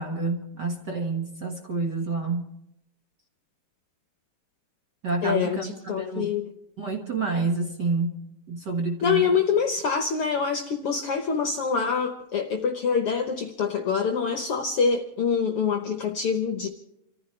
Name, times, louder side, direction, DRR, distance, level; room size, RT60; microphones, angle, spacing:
voice 1, 0.0-2.4 5.0-6.3 6.8-8.1 8.5-9.4, right 3 dB, 40° right, 1 dB, 1.8 m, -28 dB
voice 2, 5.2-6.5 9.0-16.7, left 6 dB, 65° left, 5 dB, 1.5 m, -25 dB
29.0 x 14.5 x 3.3 m, 0.83 s
omnidirectional pair, 3.6 m